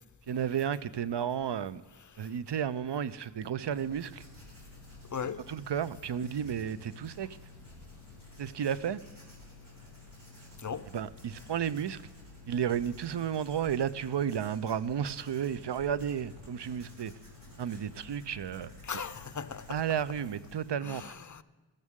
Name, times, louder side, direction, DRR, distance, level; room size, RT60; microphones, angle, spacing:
voice 1, 0.3-1.8 2.2-4.2 5.5-7.3 8.4-9.0 10.9-12.0 12.5-17.1 17.6-18.7 19.7-21.1, right 8 dB, 65° right, 0.6 m, -32 dB
Writing, 3.7-20.7, left 2 dB, 45° right, 4.8 m, -51 dB
voice 2, 18.8-19.8 20.8-21.4, left 6 dB, 40° left, 0.7 m, -38 dB
16.0 x 13.5 x 3.7 m
cardioid pair, 40°, 46 cm